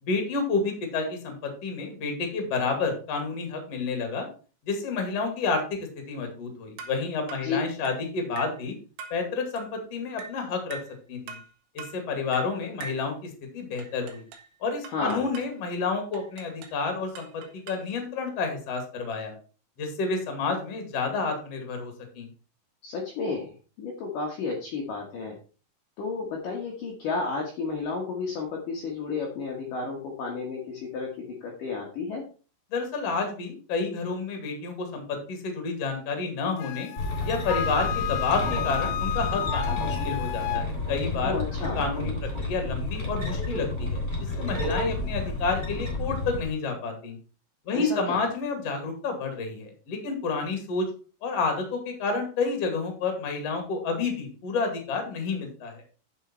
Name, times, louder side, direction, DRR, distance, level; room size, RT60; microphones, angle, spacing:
voice 1, 0.0-4.3 4.6-8.8 9.1-10.8 11.1-11.4 11.7-14.2 14.6-19.3 19.8-22.3 32.7-36.9 37.2-41.4 41.7-42.1 42.4-44.0 44.4-47.2 47.6-50.9 51.2-55.8, left 4 dB, 45° left, 5 dB, 2.8 m, -30 dB
sound 1, 6.8-7.0 7.3-7.5 7.9-8.0 8.4-8.6 9.0-9.2 9.6-9.7 10.2-10.4 10.7-11.0 11.3-11.5 11.8-12.0 12.3-12.5 12.8-13.1 13.8-14.5 14.8-15.5 16.1-16.8 17.2-17.9, right 5 dB, 80° right, 3.7 m, -43 dB
voice 2, 14.9-15.3 22.8-25.4 26.0-32.2 41.2-41.8 47.7-48.2, left 4 dB, 60° left, -1 dB, 2.7 m, -32 dB
Wind instrument woodwind instrument, 36.6-40.7, left 11 dB, 85° left, 2.6 m, -31 dB
sound 2, 37.0-46.5, left 2 dB, 15° left, 3.4 m, -30 dB
9.0 x 6.6 x 4.4 m, 0.37 s
omnidirectional pair, 5.0 m